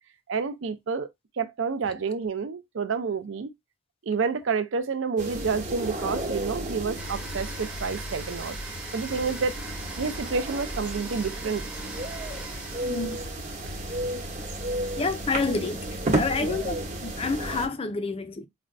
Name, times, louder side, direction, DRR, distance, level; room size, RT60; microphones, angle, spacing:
voice 1, 0.3-1.1 1.4-3.5 4.1-8.6 8.9-9.6 10.0-11.6 16.4-16.6, right 5 dB, 65° right, 0.5 m, -29 dB
sound 1, 5.2-17.7, right 1 dB, 35° right, 0.9 m, -33 dB
Domestic sounds home sounds, 7.0-13.6, right 2 dB, 5° right, 0.7 m, -42 dB
voice 2, 12.8-13.2 14.1-14.2 15.0-15.8 16.1-18.5, left 4 dB, 30° left, 0.4 m, -29 dB
5.0 x 2.2 x 2.5 m
head